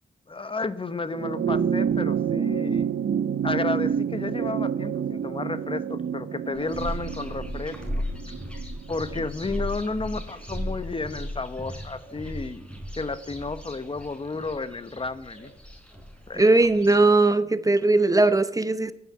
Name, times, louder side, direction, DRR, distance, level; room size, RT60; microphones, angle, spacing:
voice 1, 0.3-2.9 3.4-8.0 8.9-12.7 13.0-15.5 16.3-16.5, left 3 dB, 30° left, 0.8 m, -32 dB
sound 1, 1.1-9.8 11.0-11.1, right 8 dB, 75° right, 0.6 m, -28 dB
sound 2, 6.6-17.0, equal, 5° left, 4.5 m, -36 dB
voice 2, 16.4-18.9, right 2 dB, 20° right, 0.7 m, -19 dB
15.0 x 9.6 x 9.5 m
wide cardioid pair, 120°, 17 cm